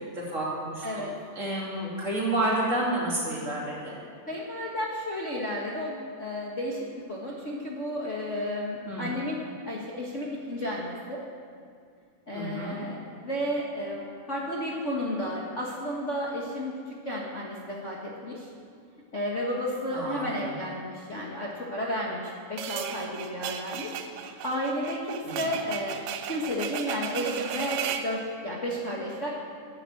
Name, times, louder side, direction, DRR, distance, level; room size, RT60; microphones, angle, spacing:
voice 1, 0.1-3.9 8.9-9.1 12.3-12.8 19.9-20.4 25.2-25.5, right 1 dB, 25° right, -5 dB, 2.8 m, -30 dB
voice 2, 4.3-9.4 9.6-11.2 12.3-14.0 14.3-18.5 19.1-26.0 26.3-29.3, equal, 55° left, -4 dB, 0.7 m, -32 dB
sound 1, 22.6-28.1, right 8 dB, 90° right, 2.4 m, -35 dB
10.5 x 10.0 x 7.8 m, 2.2 s
omnidirectional pair, 3.8 m